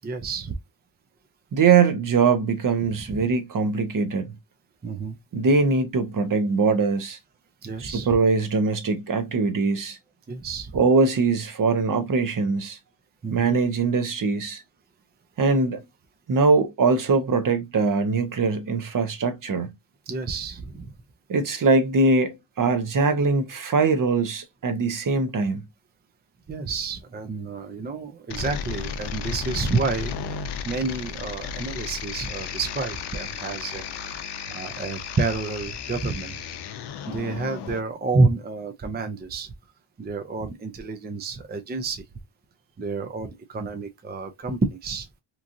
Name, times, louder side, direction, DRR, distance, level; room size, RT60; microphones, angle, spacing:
voice 1, 0.0-0.5 3.1-3.2 4.8-5.2 7.6-8.1 10.3-10.8 13.2-13.5 20.1-20.9 26.5-36.4 37.1-39.5 40.0-42.0 42.8-45.1, right 3 dB, 25° right, 0.5 m, -29 dB
voice 2, 1.5-4.3 5.3-7.2 7.8-10.0 10.7-12.8 13.3-14.6 15.4-15.8 16.3-19.7 21.3-25.6, right 4 dB, 50° right, 0.8 m, -22 dB
sound 1, 28.3-37.8, left 7 dB, 70° left, 0.6 m, -34 dB
3.0 x 2.4 x 2.5 m
cardioid pair, 65°, 43 cm